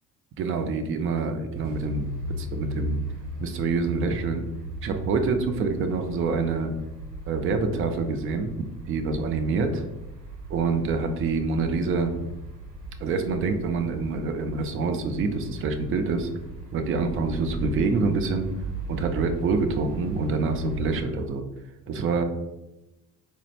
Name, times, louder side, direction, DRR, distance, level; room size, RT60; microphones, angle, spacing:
voice 1, 0.4-2.1 2.4-3.0 3.4-4.4 4.8-6.7 7.3-9.8 10.5-12.1 13.0-16.3 16.7-18.5 18.9-21.4 21.9-22.2, right 4 dB, 30° right, 6 dB, 0.4 m, -26 dB
sound 1, 1.5-21.0, right 2 dB, 75° right, 0.8 m, -37 dB
3.8 x 2.0 x 3.1 m, 0.94 s
figure-of-eight pair, 55°, 48 cm